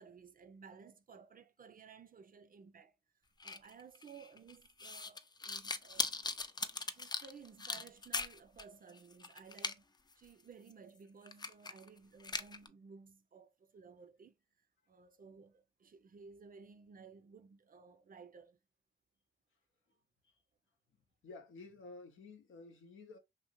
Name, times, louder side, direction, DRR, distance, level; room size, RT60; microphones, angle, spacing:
voice 1, 0.0-2.9 3.4-6.2 6.9-9.9 10.2-14.3 14.9-18.6, right 5 dB, 45° right, 0.5 m, -57 dB
sound 1, 3.4-8.6 8.9-9.7 10.1-10.2 10.7-10.8 11.3-11.9 12.2-12.7, left 3 dB, 20° left, 0.3 m, -40 dB
voice 2, 21.2-23.2, left 3 dB, 80° left, 0.6 m, -52 dB
2.7 x 2.5 x 2.9 m
supercardioid pair, 40°, 20 cm